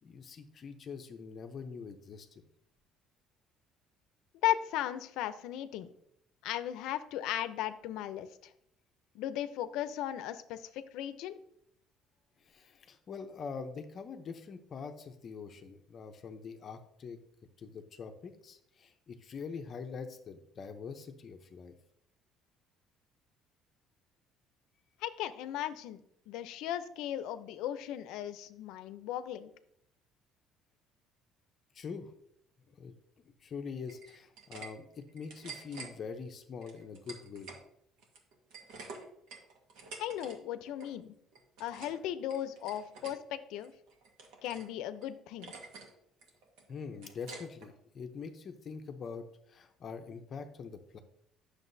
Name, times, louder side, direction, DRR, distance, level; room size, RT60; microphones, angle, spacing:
voice 1, 0.0-2.4 12.4-17.2 17.6-21.7 31.7-32.1 32.7-32.9 33.4-37.5 46.7-51.0, left 5 dB, 35° left, 6 dB, 0.7 m, -44 dB
voice 2, 4.4-5.9 6.4-8.3 9.1-11.3 25.0-29.5 40.0-41.1 41.6-43.7 44.4-45.5, left 12 dB, 70° left, 12 dB, 0.6 m, -36 dB
sound 1, 33.9-34.7 35.0-35.9 36.6-37.6 38.0-40.4 40.6-40.9 41.3-42.0 42.3-43.2 43.6-44.7 45.0-45.1 45.4-45.9 46.2-47.7, right 4 dB, 80° right, 1.5 m, -48 dB
9.4 x 6.5 x 2.7 m, 0.73 s
cardioid pair, 165°, 0 cm